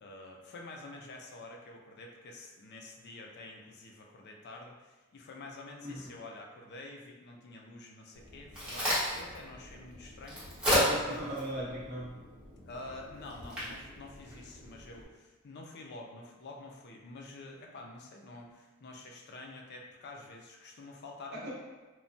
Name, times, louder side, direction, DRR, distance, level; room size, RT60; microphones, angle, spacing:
voice 1, 0.0-10.8 11.5-11.7 12.7-21.5, left 2 dB, 50° left, 1 dB, 0.4 m, -48 dB
Crack, 8.1-15.0, equal, 5° right, 1.0 m, -34 dB
voice 2, 10.8-12.1 21.3-21.5, right 1 dB, 50° right, -5 dB, 0.8 m, -38 dB
3.0 x 2.1 x 2.6 m, 1.2 s
head